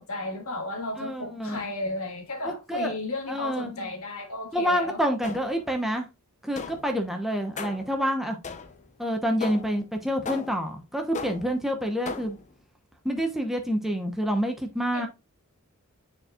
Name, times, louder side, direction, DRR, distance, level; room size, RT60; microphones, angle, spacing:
voice 1, 0.0-5.0 14.9-15.1, left 2 dB, 70° left, 2.0 m, -34 dB
voice 2, 1.0-1.6 2.4-2.9 3.3-3.9 4.5-6.1 6.4-8.4 9.0-12.4 13.0-15.1, equal, ahead, 0.9 m, -28 dB
sound 1, 5.2-5.7 6.6-7.0 7.6-8.0 8.4-8.9 9.4-9.8 10.3-10.7 11.1-11.6 12.1-12.5, left 4 dB, 35° left, 0.7 m, -37 dB
9.5 x 4.4 x 2.4 m
head